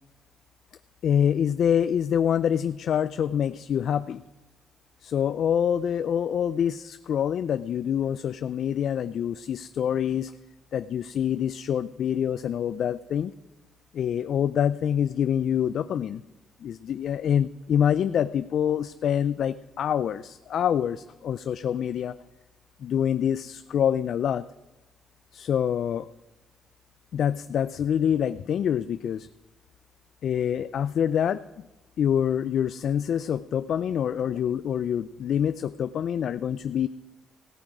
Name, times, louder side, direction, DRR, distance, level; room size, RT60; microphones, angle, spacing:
voice 1, 1.0-4.2 5.0-10.3 10.7-13.3 13.9-16.2 16.6-22.2 22.8-24.4 25.3-26.1 27.1-29.3 30.2-31.4 32.0-36.9, left 9 dB, 65° left, 12 dB, 0.3 m, -26 dB
16.5 x 8.8 x 4.9 m, 1.1 s
cardioid pair, 90°, 0 cm